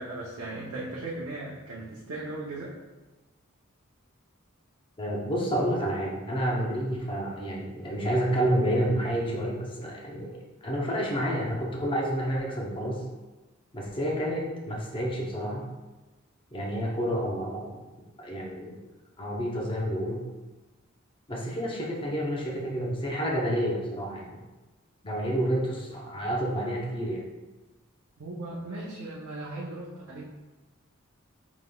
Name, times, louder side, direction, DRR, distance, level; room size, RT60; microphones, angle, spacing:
voice 1, 0.0-2.7 28.2-30.4, right 2 dB, 85° right, -5 dB, 0.6 m, -37 dB
voice 2, 5.0-13.0 13.7-15.6 16.5-17.8 18.2-18.8 19.2-20.2 21.3-24.4 25.0-27.3, equal, 25° left, -2 dB, 0.7 m, -29 dB
5.0 x 3.6 x 2.3 m, 1.2 s
head